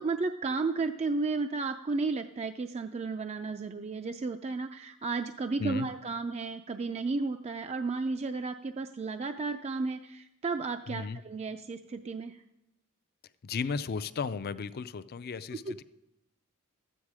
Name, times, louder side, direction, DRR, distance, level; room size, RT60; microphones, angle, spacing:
voice 1, 0.0-12.4 15.5-15.7, right 3 dB, 30° right, 7 dB, 0.3 m, -33 dB
voice 2, 10.9-11.2 13.4-15.8, left 5 dB, 45° left, 14 dB, 0.4 m, -35 dB
13.0 x 8.8 x 4.8 m, 0.89 s
head